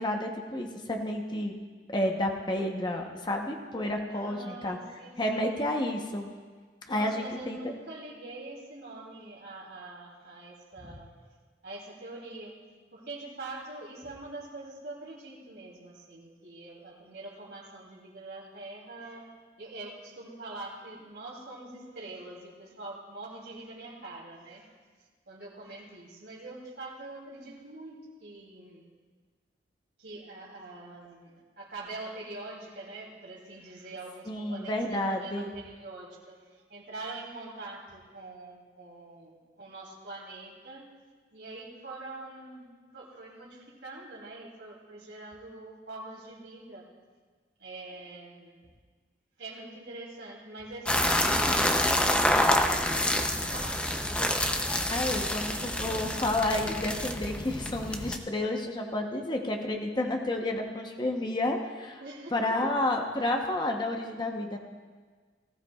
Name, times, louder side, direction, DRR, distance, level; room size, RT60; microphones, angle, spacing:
voice 1, 0.0-1.5 1.9-4.8 5.2-6.3 6.9-7.6 10.8-10.9 34.3-35.5 54.9-62.0 62.3-64.6, left 1 dB, 25° left, 2 dB, 0.9 m, -30 dB
voice 2, 4.1-5.6 6.9-11.1 11.6-12.5 12.9-24.7 25.3-28.8 30.0-36.4 36.7-40.9 41.3-42.7 42.9-46.9 47.6-48.6 49.4-54.0 55.2-55.5 55.7-55.9 62.0-62.3 62.6-62.7, right 2 dB, 75° right, -2 dB, 3.0 m, -44 dB
sound 1, 50.8-58.2, left 1 dB, 5° left, 0.6 m, -27 dB
18.5 x 15.0 x 2.4 m, 1.5 s
head